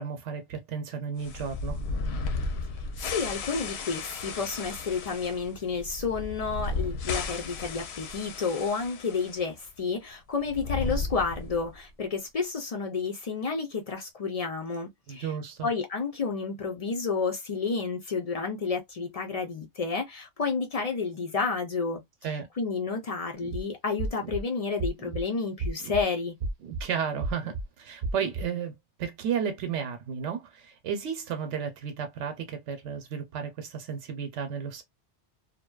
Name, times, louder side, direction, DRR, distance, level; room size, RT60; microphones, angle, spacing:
voice 1, 0.0-1.8 15.1-15.7 22.2-22.5 26.7-28.7 29.0-34.8, right 7 dB, 90° right, 0.9 m, -33 dB
sound 1, 1.2-9.4 9.7-9.8 10.4-11.8, left 3 dB, 70° left, 0.8 m, -34 dB
voice 2, 3.1-15.3 15.6-26.3, left 4 dB, 50° left, 0.4 m, -31 dB
sound 2, 23.4-23.6 24.0-24.4 24.8-25.2 25.6-26.0 26.4-26.8 27.2-27.6 28.0-28.4, right 3 dB, 55° right, 0.6 m, -32 dB
2.6 x 2.2 x 2.3 m
omnidirectional pair, 1.2 m